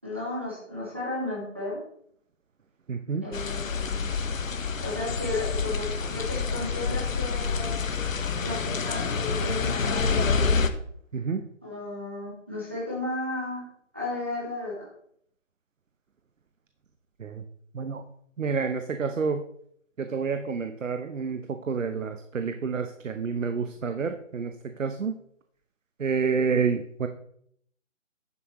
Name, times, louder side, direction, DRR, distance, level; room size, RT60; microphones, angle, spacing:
voice 1, 0.0-1.8 3.2-4.1 4.8-7.8 8.4-10.6 11.6-13.6 13.9-14.9, left 2 dB, 10° right, -6 dB, 0.9 m, -34 dB
voice 2, 2.9-3.2 11.1-11.4 17.2-17.4 17.7-18.0 18.4-19.4 20.0-25.1 26.0-27.1, right 5 dB, 75° right, 8 dB, 0.9 m, -29 dB
sound 1, 3.3-10.7, left 4 dB, 85° left, 1.0 m, -27 dB
10.0 x 7.4 x 3.0 m, 0.67 s
hypercardioid pair, 180°, 38 cm